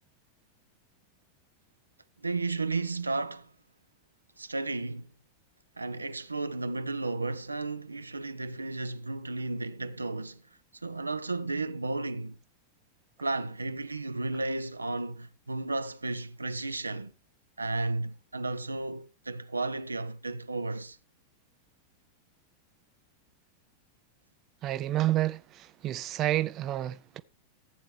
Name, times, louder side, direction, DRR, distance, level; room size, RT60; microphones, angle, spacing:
voice 1, 2.2-3.5 4.4-5.1 5.8-10.4 10.8-12.4 13.2-17.1 17.6-21.0, right 2 dB, 80° right, 0.6 m, -33 dB
voice 2, 24.6-27.2, right 14 dB, 35° right, 0.5 m, -29 dB
15.0 x 8.8 x 3.2 m
figure-of-eight pair, 90°, 0 cm